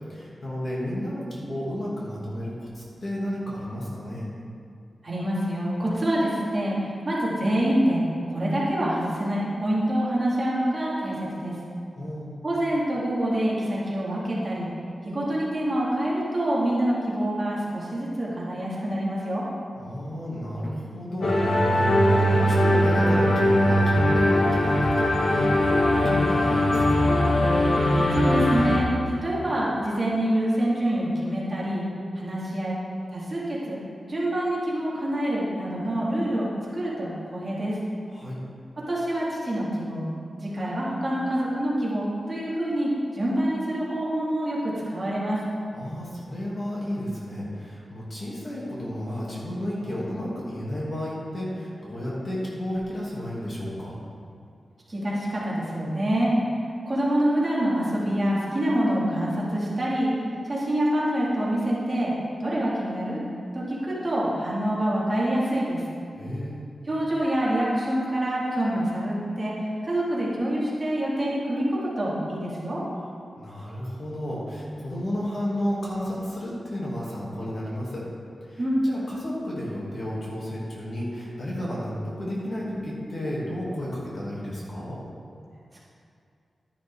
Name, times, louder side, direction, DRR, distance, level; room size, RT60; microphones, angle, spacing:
voice 1, 0.1-4.3 11.9-12.3 19.7-27.2 38.1-38.4 45.7-54.0 66.1-66.6 73.4-78.1 78.4-85.0, equal, 45° left, -6 dB, 2.6 m, -32 dB
voice 2, 5.0-6.8 7.1-11.6 12.4-14.7 15.0-19.4 28.1-31.8 32.2-32.7 33.1-33.8 34.1-37.8 38.8-40.1 40.4-45.4 54.9-56.3 56.9-60.1 60.5-62.1 62.4-63.2 63.5-65.8 66.9-72.8 78.6-78.8 85.7-85.8, right 1 dB, 25° right, -7 dB, 2.4 m, -26 dB
sound 1, 21.2-28.8, left 1 dB, 75° left, 2.1 m, -20 dB
12.0 x 11.0 x 3.7 m, 2.4 s
wide cardioid pair, 170°, 0 cm